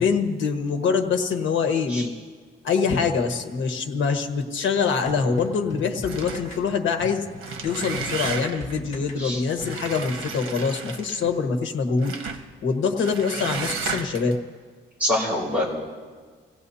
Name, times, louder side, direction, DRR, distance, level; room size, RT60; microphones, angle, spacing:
voice 1, 0.0-2.1 2.6-7.2 7.6-12.1 12.6-14.3, left 5 dB, 65° left, 5 dB, 1.4 m, -24 dB
sound 1, 5.1-10.2, left 2 dB, 35° left, 2.6 m, -39 dB
sound 2, 6.0-6.7 7.3-8.8 9.6-11.3 12.0-12.5 13.0-14.3, right 5 dB, 85° right, 1.2 m, -33 dB
voice 2, 15.0-15.6, left 1 dB, 5° right, -6 dB, 4.7 m, -25 dB
26.5 x 16.5 x 2.8 m, 1.5 s
wide cardioid pair, 170°, 21 cm